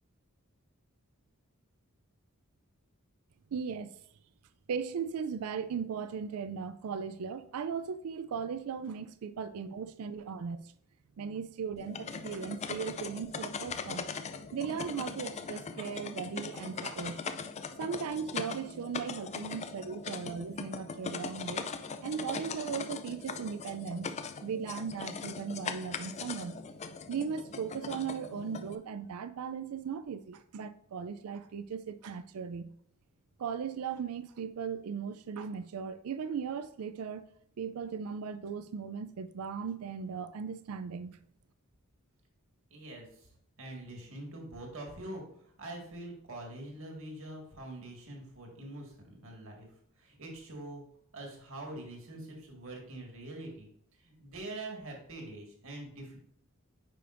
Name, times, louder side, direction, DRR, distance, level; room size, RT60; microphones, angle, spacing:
voice 1, 3.5-3.9 4.7-10.6 11.2-14.1 14.5-17.2 17.8-21.7 22.0-24.1 24.4-26.6 27.1-32.7 33.4-37.3 37.6-41.2, right 6 dB, 85° right, 0.4 m, -37 dB
sound 1, 11.8-28.8, left 5 dB, 30° left, 0.4 m, -40 dB
voice 2, 42.7-43.3 43.6-49.7 50.0-50.8 51.1-56.2, right 1 dB, 65° right, 1.8 m, -44 dB
9.1 x 5.1 x 2.5 m
head